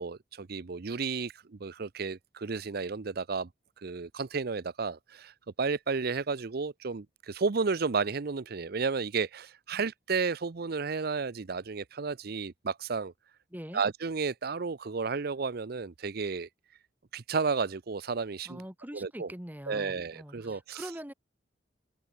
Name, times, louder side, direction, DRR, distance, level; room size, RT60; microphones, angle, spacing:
voice 1, 0.0-3.5 3.8-13.1 13.7-16.5 17.1-18.6 18.9-19.3 19.7-20.9, right 4 dB, 60° right, 0.6 m, -32 dB
voice 2, 13.5-13.8 18.4-21.1, equal, 10° right, 4.4 m, -43 dB
open air
head